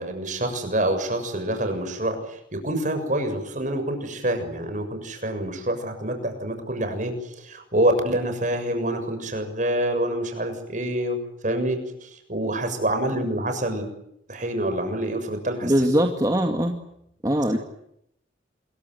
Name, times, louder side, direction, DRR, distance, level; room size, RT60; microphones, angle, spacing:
voice 1, 0.0-11.2 11.4-13.8 14.3-15.7, right 1 dB, 40° right, 7 dB, 6.9 m, -26 dB
voice 2, 15.6-16.7 17.2-17.6, right 1 dB, 20° right, 3 dB, 2.1 m, -21 dB
27.5 x 23.0 x 9.5 m, 0.78 s
head